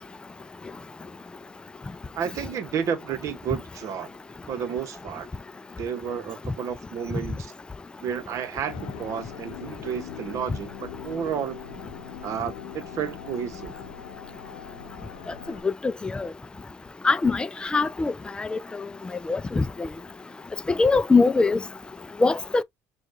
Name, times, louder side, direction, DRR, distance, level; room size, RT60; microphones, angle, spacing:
voice 1, 2.1-4.1 4.5-5.3 5.8-7.5 8.0-11.6 12.2-13.7, right 8 dB, 50° right, 0.9 m, -31 dB
sound 1, 8.7-15.6, left 8 dB, 85° left, 0.6 m, -41 dB
voice 2, 17.0-18.1 18.4-18.6 19.3-19.6 20.8-21.6 22.2-22.6, left 3 dB, 15° left, 0.3 m, -21 dB
6.3 x 2.3 x 2.5 m
supercardioid pair, 100°, 7 cm